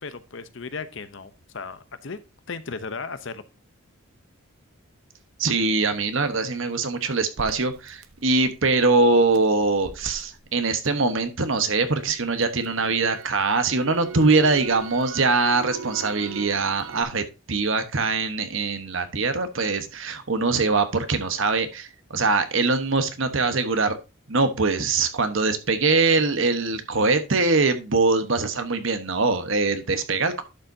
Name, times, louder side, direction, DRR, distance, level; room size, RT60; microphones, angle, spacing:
voice 1, 0.0-2.2 2.5-3.4, left 4 dB, 60° left, 13 dB, 0.7 m, -35 dB
voice 2, 5.4-24.0 24.3-30.4, right 3 dB, 65° right, 9 dB, 1.2 m, -23 dB
Crackle, 7.4-11.5 11.9-17.0, right 5 dB, 80° right, 0.9 m, -40 dB
11.5 x 6.7 x 2.7 m, 0.27 s
head